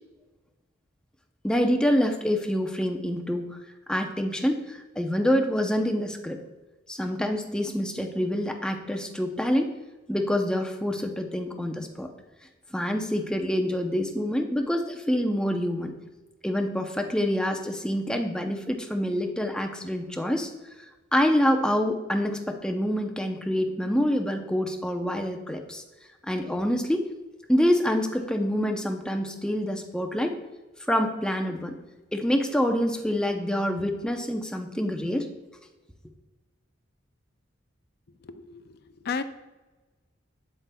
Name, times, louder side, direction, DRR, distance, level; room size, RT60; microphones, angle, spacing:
voice 1, 1.4-3.6 3.9-6.4 6.9-9.7 10.1-12.1 12.7-15.9 16.4-20.5 21.1-25.8 26.3-27.1 27.5-30.3 30.9-31.8 32.1-35.3, equal, 5° left, 4 dB, 0.6 m, -26 dB
voice 2, 38.2-38.6 39.0-39.2, left 5 dB, 55° left, 11 dB, 0.5 m, -31 dB
8.1 x 7.7 x 2.3 m, 1.2 s
head